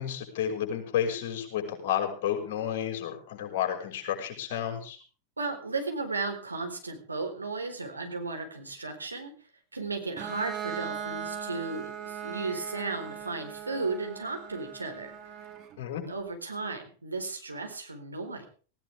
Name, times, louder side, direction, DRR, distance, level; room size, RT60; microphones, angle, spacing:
voice 1, 0.0-5.0 15.8-16.0, left 9 dB, 50° left, 2 dB, 5.9 m, -31 dB
voice 2, 5.4-9.3 9.7-15.1 16.1-18.5, right 3 dB, 80° right, 4 dB, 4.2 m, -35 dB
Bowed string instrument, 10.2-15.8, right 8 dB, 35° right, 2.8 m, -39 dB
18.5 x 17.0 x 3.6 m, 0.39 s
figure-of-eight pair, 90°, 0 cm